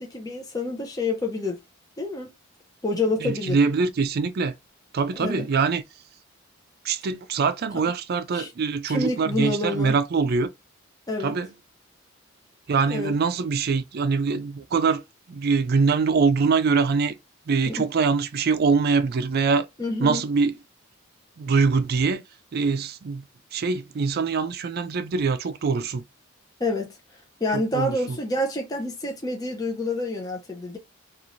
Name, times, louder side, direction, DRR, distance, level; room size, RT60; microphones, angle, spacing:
voice 1, 0.0-1.6 2.0-2.3 2.8-3.6 5.1-5.5 7.7-7.8 8.3-8.5 8.9-10.0 11.1-11.4 12.9-13.1 17.7-17.9 19.8-20.2 26.6-27.0 27.4-30.8, left 2 dB, 20° left, 0.6 m, -28 dB
voice 2, 3.2-4.5 4.9-5.8 6.8-10.5 11.2-11.5 12.7-15.0 15.3-17.1 17.5-19.7 20.0-20.5 21.4-22.2 22.5-23.2 23.5-26.0 27.5-28.2, right 4 dB, 50° right, 0.4 m, -23 dB
3.1 x 2.4 x 2.5 m
head